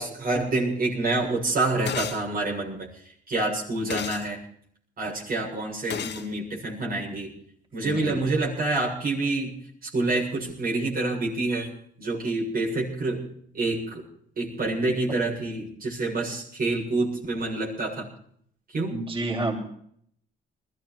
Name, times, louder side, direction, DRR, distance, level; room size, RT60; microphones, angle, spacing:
voice 1, 0.0-2.9 3.3-4.4 5.0-7.3 7.7-9.5 9.8-11.7 12.0-13.2 13.5-14.0 14.4-18.0 18.7-18.9, right 2 dB, 45° right, -2 dB, 7.2 m, -27 dB
sound 1, 1.9-2.2 3.9-4.3 5.9-6.3, left 8 dB, 60° left, 1.7 m, -32 dB
voice 2, 7.7-8.2 18.9-19.6, right 2 dB, 25° right, -2 dB, 7.5 m, -30 dB
20.5 x 15.0 x 4.6 m, 0.64 s
cardioid pair, 90°, 20 cm